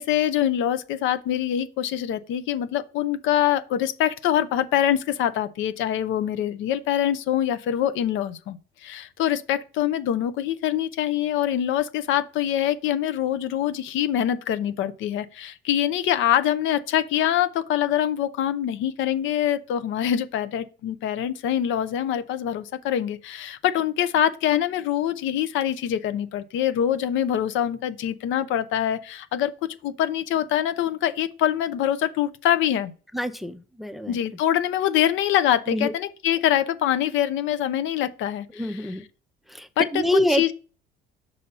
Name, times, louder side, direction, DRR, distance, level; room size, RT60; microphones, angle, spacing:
voice 1, 0.0-29.5 29.8-32.9 34.1-38.9 39.8-40.0 40.3-40.5, left 11 dB, 75° left, 0.6 m, -24 dB
voice 2, 33.1-34.2 35.7-35.9 38.5-39.0 39.5-40.4, left 1 dB, ahead, 0.6 m, -25 dB
5.3 x 4.1 x 5.4 m
cardioid pair, 90°, 20 cm